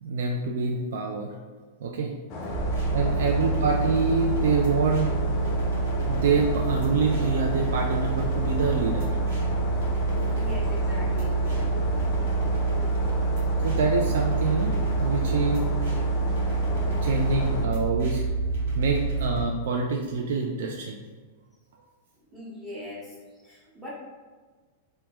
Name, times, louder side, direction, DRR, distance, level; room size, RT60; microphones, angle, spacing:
voice 1, 0.0-1.3 1.8-2.1 2.9-5.1 6.0-9.2 13.6-15.7 17.0-18.2 18.8-21.0, right 4 dB, 70° right, 1 dB, 0.3 m, -26 dB
sound 1, 2.3-17.7, left 2 dB, 30° left, 0.4 m, -34 dB
sound 2, 2.5-19.4, right 3 dB, 85° right, 0.9 m, -27 dB
voice 2, 3.0-3.3 10.3-11.4 22.3-23.9, left 1 dB, 5° right, -7 dB, 0.8 m, -41 dB
3.3 x 2.2 x 2.9 m, 1.4 s
supercardioid pair, 170°, 0 cm